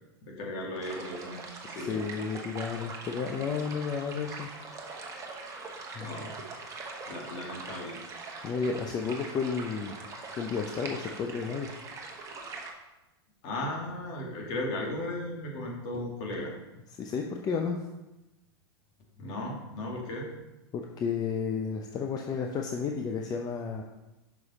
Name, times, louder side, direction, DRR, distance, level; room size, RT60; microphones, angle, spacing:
voice 1, 0.2-2.0 6.0-6.3 7.1-8.0 13.4-16.5 19.2-20.3, left 1 dB, 50° left, -1 dB, 2.2 m, -36 dB
sound 1, 0.8-12.7, right 3 dB, 25° right, 1.1 m, -42 dB
voice 2, 1.8-4.5 5.9-6.2 8.4-10.0 10.4-11.7 17.0-17.8 20.7-23.8, left 5 dB, 30° left, 2 dB, 0.6 m, -32 dB
6.0 x 5.1 x 4.2 m, 0.99 s
hypercardioid pair, 115°, 14 cm